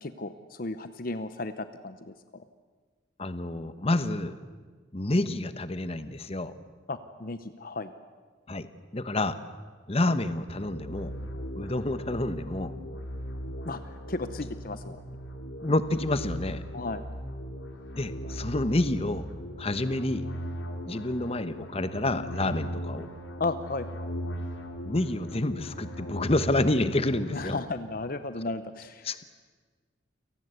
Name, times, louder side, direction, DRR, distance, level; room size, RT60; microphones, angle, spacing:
voice 1, 0.0-2.4 6.9-7.9 13.6-15.0 16.7-17.0 23.4-24.1 27.3-29.1, left 3 dB, 50° left, 11 dB, 0.9 m, -34 dB
voice 2, 3.2-4.3 4.9-6.5 8.5-8.7 8.9-9.4 9.9-11.1 11.6-12.7 15.6-16.6 17.9-19.3 19.6-20.3 20.8-23.1 24.8-27.6 29.0-29.2, left 2 dB, 30° left, 12 dB, 1.1 m, -28 dB
sound 1, 10.5-27.6, equal, 90° left, 3.0 m, -38 dB
28.5 x 18.5 x 8.2 m, 1.5 s
head